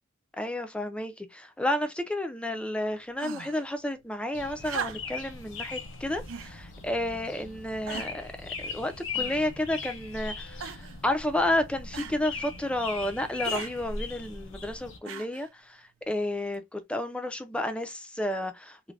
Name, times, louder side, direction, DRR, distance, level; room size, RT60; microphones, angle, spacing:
voice 1, 0.4-8.3 8.6-10.7 11.0-18.9, left 1 dB, 5° left, 0.3 m, -31 dB
sound 1, 3.2-3.7 4.6-5.3 6.3-6.6 7.3-7.4 7.9-8.3 9.1-9.7 10.6-11.0 11.9-12.2 13.4-13.7 15.0-15.5 16.5-16.6, right 7 dB, 80° right, 0.4 m, -38 dB
sound 2, 4.3-15.0, left 4 dB, 80° left, 0.7 m, -39 dB
2.4 x 2.0 x 3.2 m
head